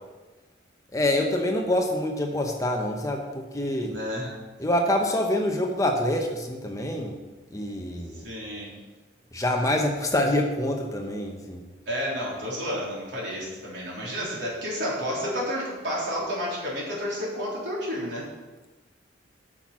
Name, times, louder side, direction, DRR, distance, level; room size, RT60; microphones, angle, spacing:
voice 1, 0.9-4.0 4.6-7.2 7.5-8.3 9.3-11.7, left 1 dB, 15° left, 2 dB, 0.8 m, -26 dB
voice 2, 3.9-4.3 8.2-8.7 11.9-18.3, equal, 65° right, -5 dB, 3.7 m, -31 dB
8.9 x 5.9 x 7.3 m, 1.2 s
head